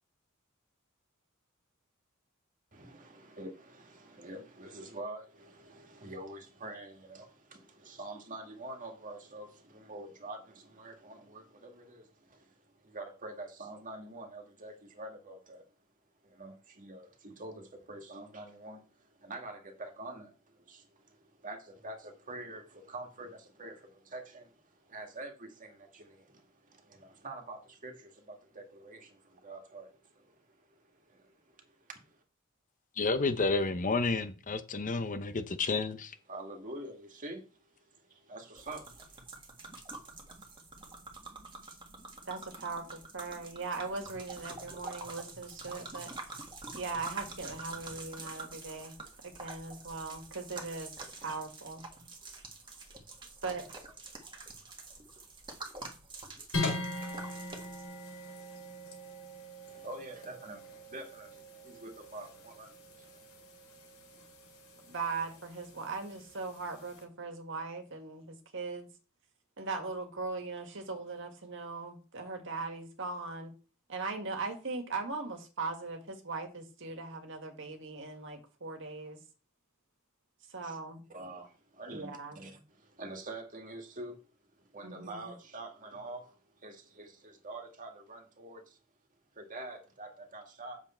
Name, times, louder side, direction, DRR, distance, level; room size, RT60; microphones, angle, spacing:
voice 1, 2.7-15.7 16.2-32.2 36.3-39.2 59.7-63.2 80.6-80.8 81.1-84.2 84.6-88.8 89.3-90.8, right 2 dB, 40° right, 2.0 m, -46 dB
voice 2, 33.0-36.1, left 3 dB, 40° left, 0.8 m, -30 dB
sound 1, 38.5-57.8, right 3 dB, 25° right, 1.7 m, -47 dB
voice 3, 42.3-46.1 46.7-49.0 49.2-50.9 51.2-51.8 53.4-53.6 64.9-68.9 69.6-73.5 73.9-79.2 80.5-81.0 81.9-82.4 84.8-85.3, right 3 dB, 60° right, 1.9 m, -39 dB
sound 2, 56.5-67.0, left 2 dB, 80° left, 4.5 m, -42 dB
8.4 x 7.2 x 4.4 m
head